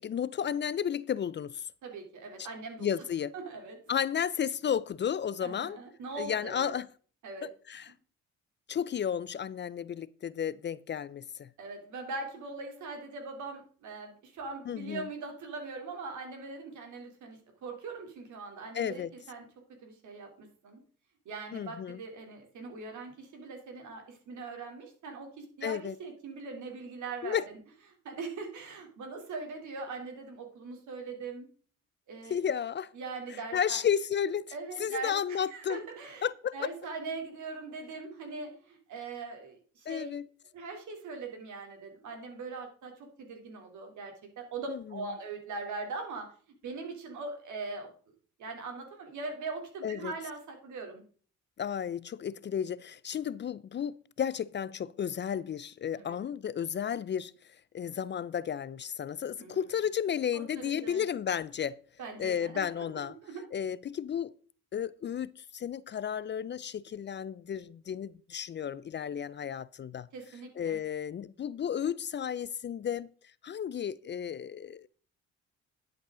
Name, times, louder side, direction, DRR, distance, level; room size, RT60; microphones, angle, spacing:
voice 1, 0.0-1.7 2.8-3.3 3.9-5.8 6.2-6.9 7.7-7.9 8.7-11.5 14.7-15.1 18.7-19.1 21.5-22.0 25.6-25.9 27.2-27.4 32.3-32.9 33.5-34.5 34.8-35.8 36.2-36.5 39.9-40.2 44.7-44.8 49.8-50.1 51.6-57.3 57.7-61.8 62.2-63.2 63.5-64.3 64.7-70.1 70.6-73.1 73.4-74.9, left 8 dB, 40° left, 0.4 m, -33 dB
voice 2, 1.8-2.9 3.3-3.8 5.4-6.7 7.2-7.5 11.6-19.5 19.8-20.8 21.2-27.4 28.0-31.5 32.1-32.4 32.9-33.8 34.5-36.3 36.5-40.2 40.5-46.3 46.6-47.9 48.4-51.0 55.9-56.2 59.4-59.6 60.3-61.0 62.0-62.8 63.2-63.4 70.1-70.8, right 3 dB, 75° right, 3.3 m, -41 dB
11.5 x 7.8 x 3.8 m
cardioid pair, 90°, 30 cm